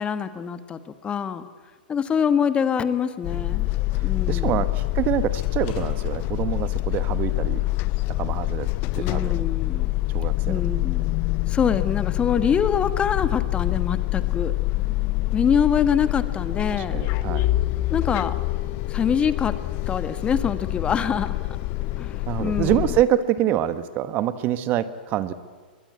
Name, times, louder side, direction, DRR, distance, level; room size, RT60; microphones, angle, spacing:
voice 1, 0.0-1.4 1.9-3.7 4.0-4.6 9.0-9.9 10.5-11.2 11.5-14.5 15.3-17.0 17.9-18.4 18.9-19.6 19.9-21.4 22.0-22.9, left 7 dB, 20° left, 12 dB, 1.3 m, -25 dB
sound 1, 3.2-23.0, left 18 dB, 40° left, 0.7 m, -26 dB
voice 2, 3.9-7.6 8.1-8.7 8.9-9.4 10.1-10.6 16.7-17.5 22.3-25.3, right 11 dB, 35° right, 14 dB, 1.2 m, -26 dB
sound 2, 5.4-14.6 15.1-15.2 16.1-17.0, left 5 dB, 60° left, 7.4 m, -50 dB
22.5 x 20.5 x 9.5 m, 1.5 s
hypercardioid pair, 110°, 5 cm